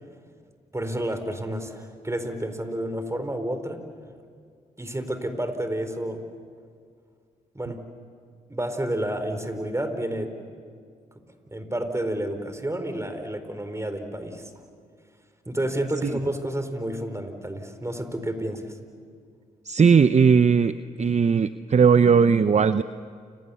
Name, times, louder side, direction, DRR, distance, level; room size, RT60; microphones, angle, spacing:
voice 1, 0.7-3.8 4.8-6.2 7.5-7.8 8.5-10.3 11.5-14.5 15.5-18.7, right 1 dB, 15° right, 8 dB, 4.4 m, -30 dB
voice 2, 19.7-22.8, right 6 dB, 40° right, 12 dB, 0.8 m, -18 dB
29.5 x 26.5 x 7.1 m, 2.2 s
supercardioid pair, 45°, 17 cm